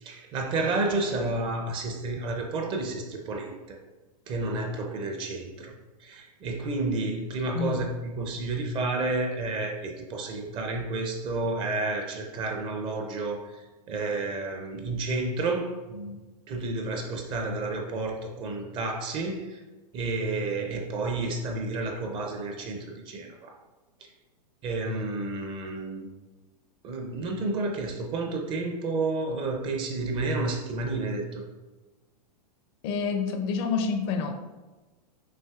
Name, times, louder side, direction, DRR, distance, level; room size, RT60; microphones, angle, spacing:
voice 1, 0.0-3.8 4.3-5.7 6.0-16.2 16.5-19.6 19.9-23.6 24.0-24.1 24.6-26.1 26.8-31.4, right 2 dB, 25° right, 2 dB, 0.4 m, -31 dB
voice 2, 7.5-7.8 32.8-34.3, left 5 dB, 40° left, 6 dB, 0.4 m, -28 dB
5.6 x 2.7 x 2.3 m, 1.2 s
hypercardioid pair, 135°, 21 cm